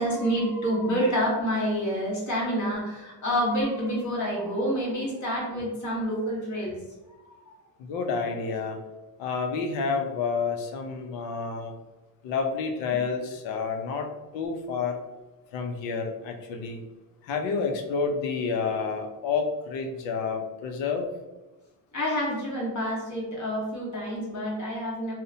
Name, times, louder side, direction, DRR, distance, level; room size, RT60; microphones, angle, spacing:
voice 1, 0.0-6.8 7.2-7.5 21.9-25.1, equal, 40° left, -4 dB, 1.1 m, -28 dB
voice 2, 7.8-8.8 9.2-11.7 12.2-14.1 14.3-15.0 15.5-16.8 17.2-21.1, left 5 dB, 80° left, 4 dB, 0.6 m, -29 dB
2.7 x 2.1 x 2.6 m, 1.1 s
cardioid pair, 90°, 44 cm